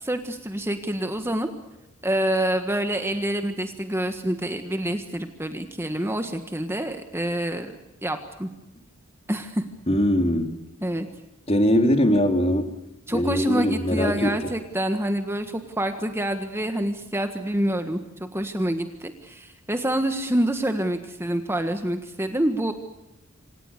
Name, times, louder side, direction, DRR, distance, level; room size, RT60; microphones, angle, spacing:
voice 1, 0.0-1.5 2.0-7.8 8.0-8.5 9.3-9.6 10.8-11.1 13.1-22.7, right 1 dB, 10° right, 7 dB, 1.6 m, -27 dB
voice 2, 9.9-10.6 11.5-12.7 13.1-14.4, equal, 25° left, 6 dB, 3.0 m, -21 dB
28.0 x 26.5 x 6.7 m, 0.97 s
head